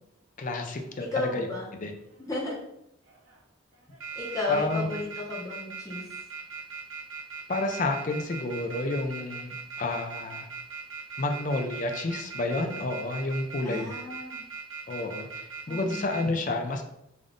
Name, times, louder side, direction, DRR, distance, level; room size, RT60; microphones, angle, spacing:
voice 1, 0.4-1.5 1.8-1.9 4.5-5.0 7.5-10.5 11.2-14.0 14.9-16.8, left 2 dB, 40° left, 5 dB, 0.4 m, -30 dB
sound 1, 0.9-1.3 2.0-2.6 3.1-3.4 3.7-16.2, right 5 dB, 75° right, 1.1 m, -40 dB
voice 2, 1.0-1.7 2.3-2.6 4.1-6.1 13.6-14.4 15.7-16.1, left 2 dB, 15° left, -6 dB, 1.0 m, -33 dB
3.4 x 2.6 x 3.7 m, 0.81 s
head